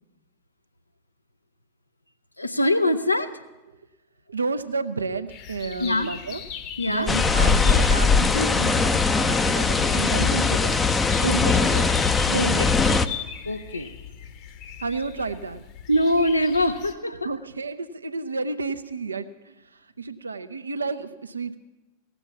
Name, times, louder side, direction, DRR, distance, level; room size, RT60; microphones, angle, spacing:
voice 1, 2.4-3.3 5.8-6.1 6.8-7.1 11.2-11.3 12.3-13.0 13.4-13.9 15.9-17.3, left 1 dB, 85° left, 9 dB, 0.7 m, -23 dB
voice 2, 4.3-6.4 6.9-10.8 11.3-11.9 12.3-12.8 14.8-15.6 17.2-21.6, right 4 dB, 75° right, 10 dB, 0.6 m, -31 dB
sound 1, 5.3-16.9, left 8 dB, 40° left, 1.0 m, -39 dB
sound 2, 7.1-13.1, left 4 dB, 15° left, 0.5 m, -20 dB
17.0 x 7.1 x 7.1 m, 1.1 s
figure-of-eight pair, 90°, 0 cm